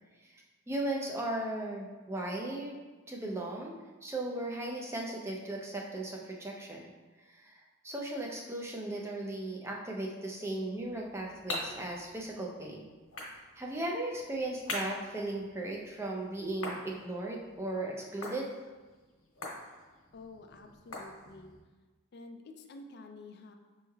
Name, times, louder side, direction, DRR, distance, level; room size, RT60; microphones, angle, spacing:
voice 1, 0.2-2.8 3.1-3.7 4.0-6.9 7.2-7.6 7.8-12.9 13.6-18.5, right 1 dB, 10° right, -1 dB, 0.4 m, -37 dB
sound 1, 10.8-21.6, left 2 dB, 80° left, 1.2 m, -45 dB
voice 2, 20.1-21.6 22.1-23.6, left 3 dB, 50° left, 4 dB, 0.4 m, -49 dB
6.3 x 3.1 x 2.3 m, 1.3 s
head